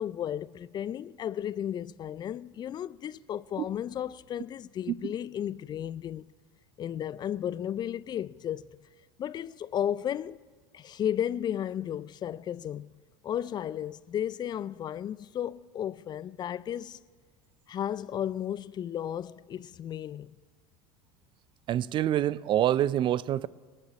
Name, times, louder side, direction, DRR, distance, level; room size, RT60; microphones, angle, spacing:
voice 1, 0.0-6.2 6.8-8.8 9.2-10.4 10.7-12.9 13.2-17.0 17.7-20.3, left 10 dB, 35° left, 0.4 m, -34 dB
voice 2, 21.7-23.5, right 12 dB, 40° right, 0.4 m, -26 dB
18.5 x 6.7 x 9.5 m
hypercardioid pair, 80°, 12 cm